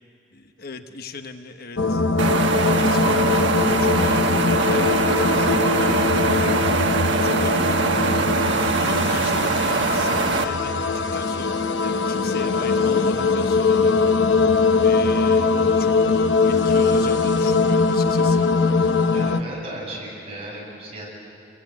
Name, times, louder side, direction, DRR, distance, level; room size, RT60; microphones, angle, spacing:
voice 1, 0.3-2.1 2.7-3.2 3.8-4.9 5.3-6.6 7.2-15.5 15.7-18.5, left 3 dB, 55° left, 7 dB, 1.1 m, -38 dB
sound 1, 1.8-19.4, left 4 dB, 85° left, 1.0 m, -21 dB
sound 2, 2.2-10.4, right 4 dB, 85° right, 1.2 m, -22 dB
voice 2, 19.0-21.1, right 1 dB, 35° right, -4 dB, 8.0 m, -35 dB
29.0 x 21.5 x 8.4 m, 2.6 s
head